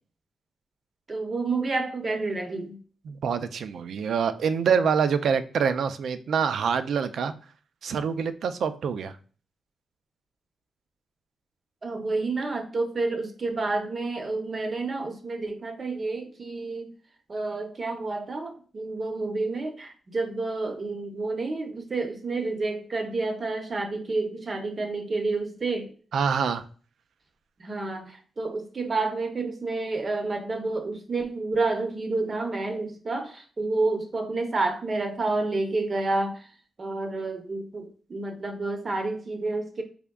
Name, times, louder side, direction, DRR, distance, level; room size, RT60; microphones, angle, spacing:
voice 1, 1.1-2.7 11.8-16.9 17.3-25.9 27.6-36.5 36.8-39.8, right 3 dB, 35° right, 5 dB, 0.6 m, -29 dB
voice 2, 3.1-7.3 7.8-9.1 26.1-26.6, right 6 dB, 75° right, 11 dB, 0.3 m, -25 dB
3.5 x 3.4 x 2.2 m, 0.41 s
wide cardioid pair, 120°, 0 cm